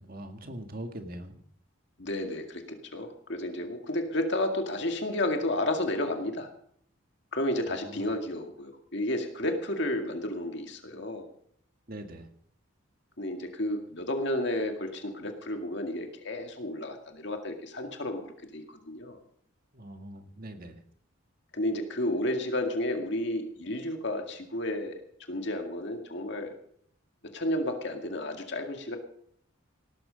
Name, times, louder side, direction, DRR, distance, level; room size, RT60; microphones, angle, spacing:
voice 1, 0.0-1.4 7.7-8.0 11.9-12.3 19.7-20.8, right 1 dB, 45° right, 6 dB, 2.0 m, -42 dB
voice 2, 2.0-6.5 7.3-11.3 13.2-19.2 21.5-25.0 25.3-26.5 27.2-29.0, left 1 dB, 55° left, 4 dB, 2.1 m, -32 dB
18.0 x 12.5 x 5.2 m, 0.64 s
head